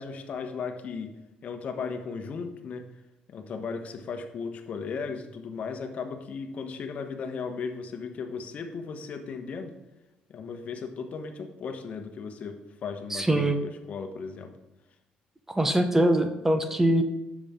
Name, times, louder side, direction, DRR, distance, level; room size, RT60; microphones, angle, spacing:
voice 1, 0.0-2.9 3.3-9.7 10.3-14.5, left 5 dB, 50° left, 7 dB, 1.2 m, -36 dB
voice 2, 13.1-13.6 15.5-17.0, right 1 dB, 10° right, 8 dB, 1.0 m, -23 dB
9.8 x 7.2 x 3.7 m, 1.0 s
cardioid pair, 100°, 3 cm